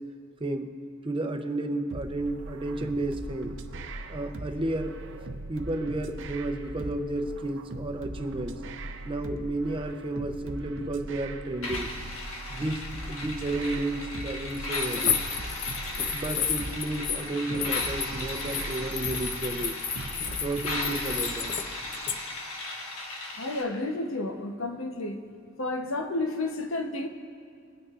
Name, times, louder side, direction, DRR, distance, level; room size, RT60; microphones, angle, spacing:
voice 1, 1.0-3.6 4.1-5.2 5.5-8.6 9.0-11.9 12.5-15.2 16.0-19.8 20.4-21.5, right 2 dB, 25° right, 5 dB, 0.6 m, -32 dB
sound 1, 1.9-21.5, right 2 dB, 65° right, 0.7 m, -40 dB
sound 2, 11.6-23.6, left 2 dB, 90° left, 1.5 m, -37 dB
sound 3, 14.5-17.3 17.5-21.6 21.9-22.1, left 8 dB, 40° left, 0.6 m, -32 dB
voice 2, 23.4-25.2 25.6-27.1, left 2 dB, 70° left, 5 dB, 0.9 m, -31 dB
22.0 x 9.3 x 2.5 m, 2.3 s
head